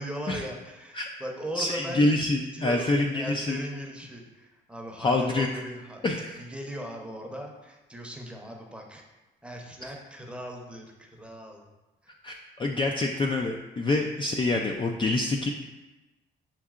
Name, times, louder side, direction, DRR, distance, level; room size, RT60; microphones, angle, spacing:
voice 1, 0.0-2.1 2.5-6.0 6.4-9.0 9.4-11.7 12.0-12.2 13.9-14.0, equal, 5° right, 0 dB, 0.7 m, -39 dB
voice 2, 1.6-3.6 5.0-5.5 6.0-6.4 9.8-9.9 12.2-15.5, left 2 dB, 25° left, 2 dB, 0.3 m, -26 dB
7.2 x 2.7 x 2.4 m, 1.1 s
cardioid pair, 90°, 20 cm